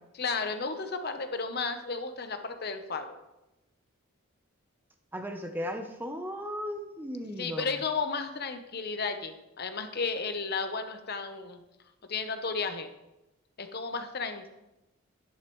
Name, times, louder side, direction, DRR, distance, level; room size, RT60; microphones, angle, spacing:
voice 1, 0.2-3.1 7.4-11.6 12.1-12.9 13.6-14.5, left 4 dB, 45° left, 7 dB, 0.8 m, -33 dB
voice 2, 5.1-7.8, equal, 10° right, 5 dB, 0.7 m, -36 dB
12.0 x 10.0 x 3.1 m, 0.97 s
head